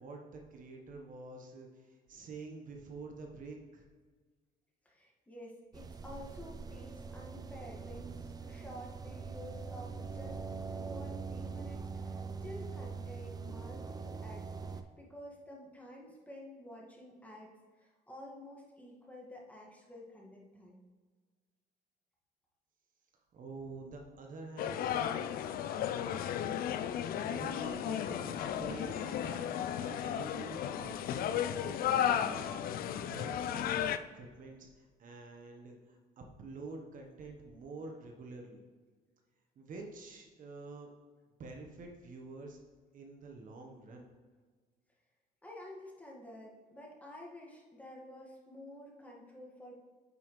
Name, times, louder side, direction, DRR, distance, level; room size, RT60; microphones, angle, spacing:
voice 1, 0.0-3.9 23.3-25.2 27.3-38.6 39.6-40.9 41.4-42.6 42.9-44.1, right 3 dB, 50° right, 2 dB, 1.2 m, -48 dB
voice 2, 4.9-10.4 10.7-17.5 17.8-20.8 45.4-49.7, left 1 dB, 10° left, -3 dB, 1.8 m, -50 dB
sound 1, 5.7-14.8, right 5 dB, 25° right, 0.5 m, -43 dB
sound 2, 24.6-34.0, left 9 dB, 60° left, 0.4 m, -34 dB
9.1 x 5.6 x 3.2 m, 1.5 s
cardioid pair, 110°, 17 cm